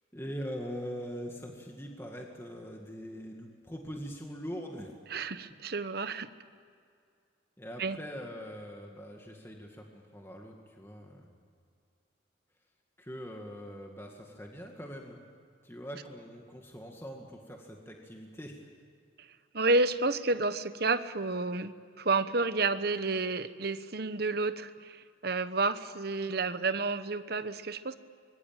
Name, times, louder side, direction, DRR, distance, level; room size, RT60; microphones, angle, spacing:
voice 1, 0.1-4.9 7.6-11.4 13.0-15.2 15.6-18.6, equal, 10° left, 1 dB, 2.1 m, -42 dB
voice 2, 5.1-6.3 7.8-8.0 19.2-19.3 19.5-27.9, right 3 dB, 50° right, 12 dB, 1.0 m, -30 dB
25.0 x 22.5 x 9.0 m, 2.3 s
head